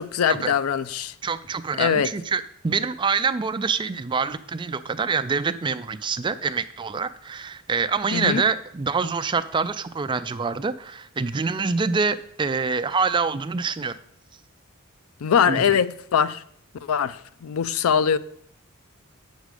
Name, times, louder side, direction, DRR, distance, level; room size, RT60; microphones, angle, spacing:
voice 1, 0.0-1.1 1.8-2.1 8.1-8.4 15.2-16.4 16.9-18.2, left 7 dB, 75° left, 0.4 m, -22 dB
voice 2, 1.2-14.0 15.4-15.8, right 5 dB, 20° right, 0.3 m, -26 dB
8.2 x 6.4 x 4.9 m
head